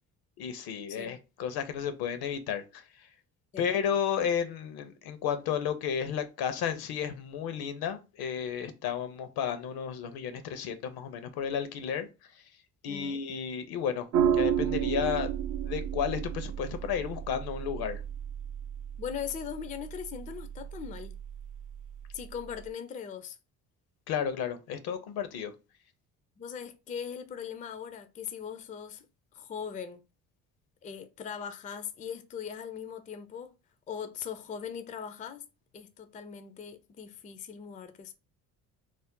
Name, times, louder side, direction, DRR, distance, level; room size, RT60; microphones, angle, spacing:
voice 1, 0.4-3.1 3.6-12.4 12.8-14.1 14.3-15.3 15.6-18.0 24.1-25.5, left 8 dB, 60° left, 0.6 m, -33 dB
voice 2, 12.8-13.2 19.0-21.2 22.1-23.4 26.4-29.1 29.3-30.0 30.8-33.5 33.9-35.4 35.7-38.1, left 7 dB, 20° left, 0.4 m, -40 dB
sound 1, 14.1-22.7, right 9 dB, 50° right, 0.4 m, -33 dB
2.5 x 2.0 x 3.6 m
hypercardioid pair, 55°, 42 cm